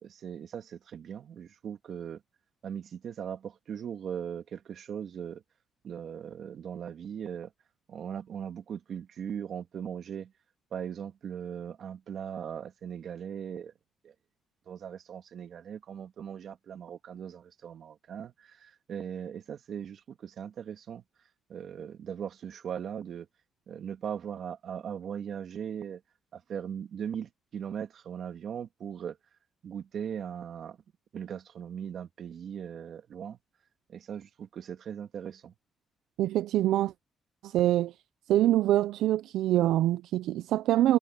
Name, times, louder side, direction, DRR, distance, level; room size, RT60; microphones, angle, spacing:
voice 1, 0.0-2.2 2.6-5.4 5.8-7.5 7.9-10.3 10.7-13.7 14.0-14.1 14.7-21.0 21.5-23.3 23.7-26.0 26.3-29.2 29.6-30.8 31.1-33.4 33.9-35.5, right 8 dB, 60° right, 2.5 m, -39 dB
voice 2, 36.2-36.9 37.4-37.9 38.3-41.0, right 13 dB, 85° right, 0.4 m, -25 dB
cardioid pair, 90°, 0 cm